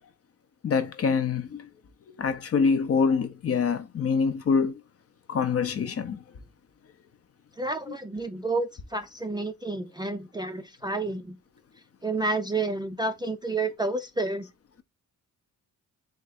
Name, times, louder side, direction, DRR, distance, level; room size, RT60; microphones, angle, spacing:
voice 1, 0.6-1.7 2.2-4.8 5.3-6.2, left 5 dB, 45° left, 0.7 m, -25 dB
voice 2, 7.6-11.4 12.0-14.5, right 2 dB, 15° right, 0.4 m, -30 dB
3.6 x 2.5 x 4.1 m
cardioid pair, 100°, 34 cm